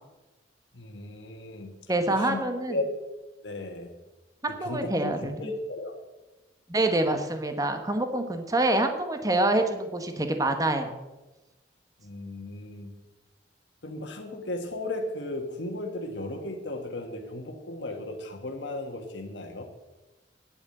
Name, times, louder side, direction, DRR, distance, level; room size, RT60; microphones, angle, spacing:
voice 1, 0.7-1.7 2.1-2.4 2.7-3.0 3.4-3.9 4.5-5.9 12.0-12.9 13.8-19.6, left 2 dB, 75° left, 3 dB, 1.4 m, -35 dB
voice 2, 1.9-2.7 4.4-5.4 6.7-10.9, right 2 dB, 20° right, 7 dB, 1.1 m, -26 dB
10.0 x 8.6 x 7.7 m, 1.1 s
head